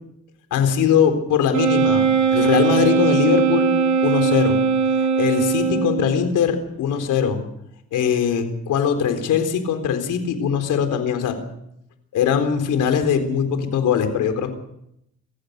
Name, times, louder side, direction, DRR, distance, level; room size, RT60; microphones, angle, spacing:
voice 1, 0.5-3.7 4.0-4.6 5.2-7.4 7.9-11.4 12.1-14.5, left 7 dB, 85° left, 6 dB, 4.0 m, -21 dB
Wind instrument woodwind instrument, 1.5-6.2, right 6 dB, 75° right, 4.5 m, -19 dB
25.5 x 15.5 x 6.8 m, 0.78 s
cardioid pair, 90°, 30 cm